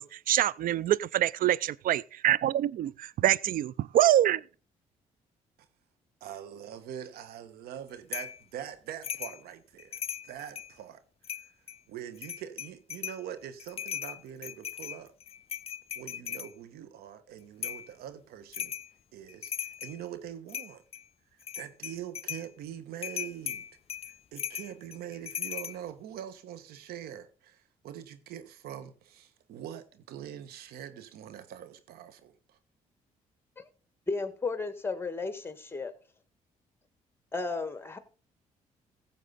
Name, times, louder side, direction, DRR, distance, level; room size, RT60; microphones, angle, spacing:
voice 1, 0.0-4.4, right 12 dB, 65° right, 0.5 m, -25 dB
voice 2, 6.2-11.0 11.4-11.5 11.9-15.1 15.9-18.7 19.1-20.8 21.3-23.7 24.3-32.6, right 10 dB, 80° right, 1.3 m, -43 dB
sound 1, 8.1-8.4 9.0-9.4 9.8-10.7 11.2-11.8 12.2-13.2 13.6-16.5 17.6-17.9 18.5-18.9 19.3-20.0 20.5-21.0 21.4-22.5 23.0-25.8, left 8 dB, 40° left, 0.4 m, -38 dB
voice 3, 34.1-35.9 37.3-38.0, left 3 dB, 15° left, 1.6 m, -34 dB
15.0 x 7.4 x 4.0 m
supercardioid pair, 60°, 16 cm